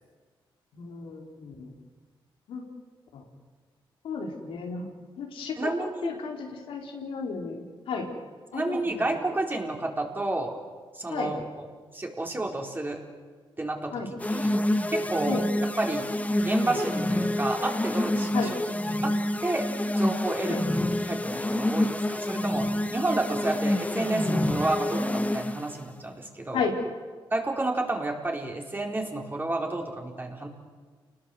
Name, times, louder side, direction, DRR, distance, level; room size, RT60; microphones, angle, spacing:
voice 1, 0.7-1.7 2.5-2.6 3.1-3.2 4.0-4.9 5.2-5.7 6.0-8.1 8.5-9.0 11.1-11.3 13.9-14.1 15.3-15.4 18.3-18.5 20.5-20.6 26.5-26.7, left 5 dB, 90° left, 1 dB, 4.2 m, -33 dB
voice 2, 5.6-6.2 8.5-10.5 10.9-11.7 11.9-13.0 13.6-14.5 14.9-15.4 15.8-16.1 16.4-18.6 19.0-19.1 19.4-19.6 20.0-20.6 21.0-22.6 22.9-26.7 27.3-30.5, right 2 dB, 20° right, 1 dB, 4.5 m, -30 dB
sound 1, 14.2-25.8, left 1 dB, 15° left, 1.3 m, -27 dB
29.5 x 20.0 x 8.0 m, 1.5 s
cardioid pair, 90°, 9 cm